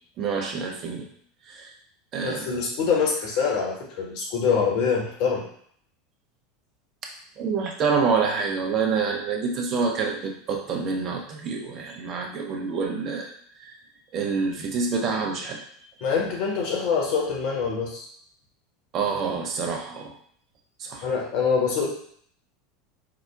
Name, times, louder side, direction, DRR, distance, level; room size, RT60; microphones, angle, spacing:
voice 1, 0.2-1.1 1.5-1.7 2.1-2.5 7.4-13.3 13.6-13.7 14.1-15.6 18.9-20.1 20.8-21.1, right 5 dB, 40° right, 2 dB, 0.6 m, -27 dB
voice 2, 2.2-5.4 16.0-18.1 21.0-21.9, left 5 dB, 50° left, -2 dB, 1.0 m, -25 dB
4.8 x 2.1 x 2.4 m, 0.63 s
figure-of-eight pair, 80°, 0 cm